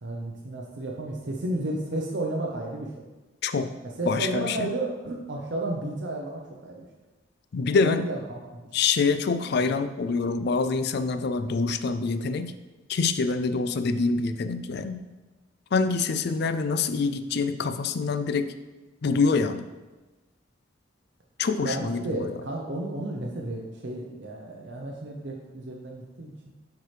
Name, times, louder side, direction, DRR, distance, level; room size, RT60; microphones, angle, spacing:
voice 1, 0.0-2.9 4.0-6.9 7.8-8.7 21.6-26.5, right 2 dB, 60° right, -1 dB, 0.7 m, -32 dB
voice 2, 4.1-4.7 7.5-8.0 8.7-12.5 12.9-15.0 15.7-18.5 19.0-19.6 21.4-22.3, left 4 dB, 55° left, 10 dB, 0.4 m, -25 dB
8.3 x 4.6 x 3.3 m, 1.2 s
head